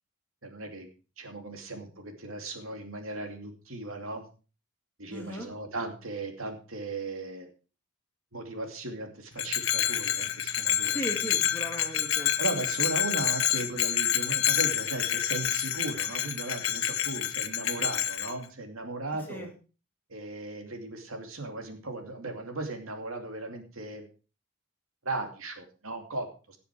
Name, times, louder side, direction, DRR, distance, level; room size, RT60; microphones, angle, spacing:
voice 1, 0.4-0.9 1.2-4.2 5.0-7.5 8.3-11.0 12.4-19.5 20.1-24.0 25.0-26.6, right 2 dB, 75° right, 4 dB, 2.6 m, -37 dB
voice 2, 5.1-5.5 10.8-12.4 19.3-19.5, equal, 10° left, 0 dB, 3.2 m, -37 dB
Bell, 9.4-18.3, left 11 dB, 70° left, 1.3 m, -28 dB
17.5 x 7.0 x 4.8 m, 0.35 s
head